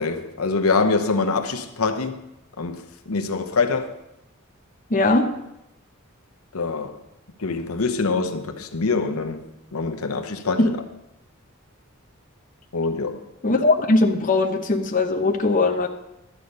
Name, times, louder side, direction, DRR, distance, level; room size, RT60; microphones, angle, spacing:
voice 1, 0.0-2.2 2.6-2.8 3.1-3.9 6.5-7.0 7.4-9.4 9.7-10.7 12.7-13.2, left 4 dB, 80° left, 6 dB, 1.0 m, -24 dB
voice 2, 4.9-5.3 10.6-10.7 13.4-15.9, left 2 dB, 40° left, 3 dB, 0.8 m, -20 dB
12.0 x 8.5 x 5.4 m, 0.87 s
head